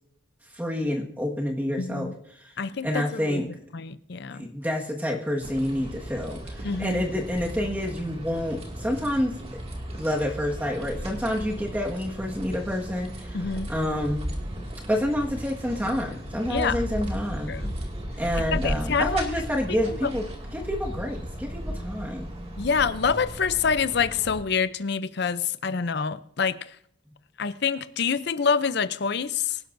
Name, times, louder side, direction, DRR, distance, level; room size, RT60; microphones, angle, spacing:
voice 1, 0.5-2.5 2.8-3.5 4.3-9.6 10.0-13.4 13.7-14.2 14.9-17.6 18.2-20.2 20.5-22.4 25.7-25.8, left 1 dB, 10° right, 1.6 m, -28 dB
voice 2, 1.8-2.1 2.6-4.5 6.6-7.0 13.3-13.7 16.5-16.8 17.5-17.7 18.4-19.3 19.7-19.8 20.0-20.1 22.6-26.8 27.4-29.6, left 6 dB, 55° left, 0.6 m, -27 dB
sound 1, 5.4-24.4, equal, 30° right, 2.2 m, -35 dB
25.0 x 11.5 x 2.6 m
head